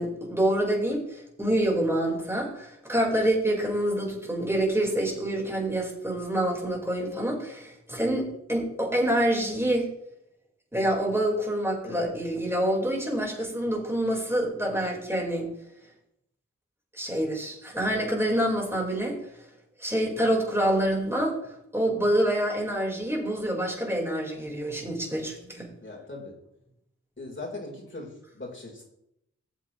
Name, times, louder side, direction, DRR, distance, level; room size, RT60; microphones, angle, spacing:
voice 1, 0.0-9.9 10.7-15.5 16.9-19.1 19.8-21.3 21.7-25.7, right 1 dB, 10° right, -2 dB, 4.7 m, -27 dB
voice 2, 25.8-26.3 27.2-28.8, left 2 dB, 40° left, -2 dB, 4.2 m, -39 dB
15.0 x 7.8 x 3.2 m, 0.79 s
cardioid pair, 50°, 29 cm